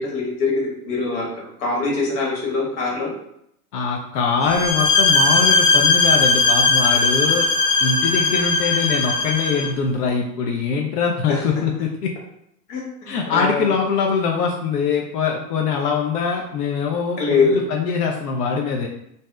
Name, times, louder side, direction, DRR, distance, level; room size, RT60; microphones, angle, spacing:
voice 1, 0.0-3.1 11.3-11.4 12.7-13.7 17.2-17.6, left 4 dB, 55° left, -3 dB, 1.4 m, -23 dB
voice 2, 3.7-7.5 7.8-12.1 13.1-18.9, left 5 dB, 75° left, 1 dB, 0.6 m, -23 dB
sound 1, 4.4-9.7, left 3 dB, 10° left, 0.8 m, -18 dB
2.7 x 2.1 x 3.3 m, 0.76 s
hypercardioid pair, 115°, 49 cm